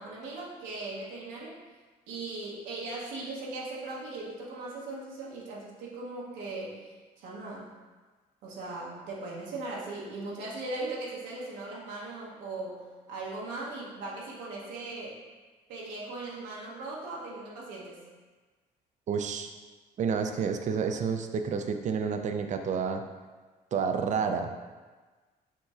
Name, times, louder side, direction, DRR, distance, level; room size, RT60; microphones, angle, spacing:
voice 1, 0.0-1.6 2.1-6.8 7.2-7.7 8.4-15.2 15.7-18.0, right 2 dB, 80° right, -4 dB, 0.9 m, -39 dB
voice 2, 19.1-19.5 20.0-23.0 23.7-24.5, right 6 dB, 40° right, 6 dB, 0.4 m, -29 dB
5.5 x 3.0 x 2.4 m, 1.3 s
supercardioid pair, 65°, 18 cm